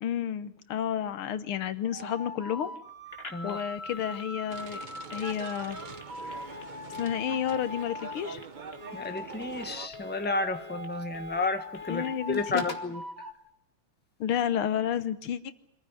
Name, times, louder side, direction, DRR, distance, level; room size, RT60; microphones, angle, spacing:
voice 1, 0.0-2.8 3.4-4.8 5.1-5.8 6.2-6.4 7.0-8.4 11.9-12.6 14.2-15.5, left 9 dB, 85° left, 13 dB, 2.0 m, -31 dB
sound 1, 1.8-8.2 8.8-13.3, left 1 dB, 30° right, 2.0 m, -42 dB
Telephone, 3.1-12.9, left 2 dB, 30° left, 2.4 m, -47 dB
voice 2, 3.3-3.6 8.9-13.0, left 3 dB, 5° left, 8 dB, 1.2 m, -32 dB
sound 2, 4.5-9.9, right 5 dB, 55° right, 0.5 m, -44 dB
26.5 x 15.0 x 9.9 m, 0.79 s
omnidirectional pair, 2.3 m